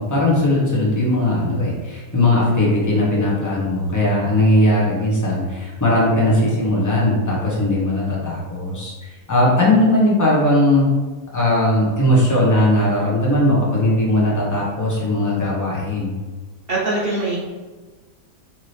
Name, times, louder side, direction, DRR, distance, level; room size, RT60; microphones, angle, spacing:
voice 1, 0.0-10.9 11.3-16.1, left 1 dB, 15° left, -5 dB, 0.7 m, -18 dB
voice 2, 16.7-17.4, right 2 dB, 45° right, -7 dB, 0.8 m, -22 dB
4.6 x 2.9 x 3.2 m, 1.3 s
omnidirectional pair, 1.8 m